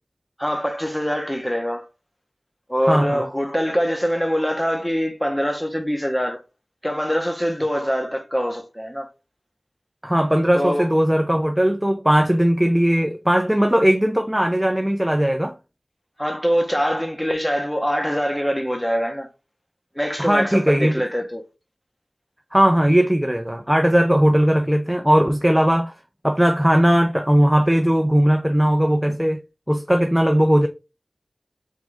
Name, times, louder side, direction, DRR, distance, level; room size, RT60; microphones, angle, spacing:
voice 1, 0.4-1.9 2.7-6.4 6.8-9.1 10.5-10.9 16.2-19.3 19.9-21.4, equal, 10° left, 0.9 m, -23 dB
voice 2, 2.9-3.2 10.0-15.5 20.2-21.0 22.5-25.9 26.2-29.4 29.7-30.7, equal, 10° right, 0.4 m, -18 dB
3.6 x 3.6 x 3.4 m
wide cardioid pair, 50°, 0 cm